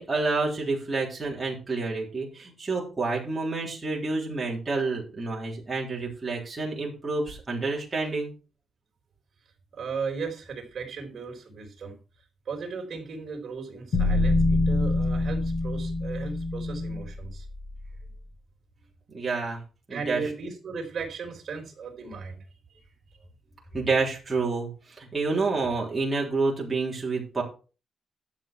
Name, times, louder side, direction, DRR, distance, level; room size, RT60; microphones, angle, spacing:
voice 1, 0.0-8.3 19.1-19.6 19.9-20.2 23.7-27.4, right 3 dB, 15° right, -3 dB, 3.6 m, -28 dB
voice 2, 9.7-12.0 12.5-17.5 19.9-22.4 22.7-22.8 23.1-23.2, right 5 dB, 45° right, 1 dB, 3.9 m, -36 dB
sound 1, 13.9-18.1, left 2 dB, 70° left, 3.1 m, -26 dB
12.0 x 7.4 x 4.5 m, 0.35 s
wide cardioid pair, 170°, 0 cm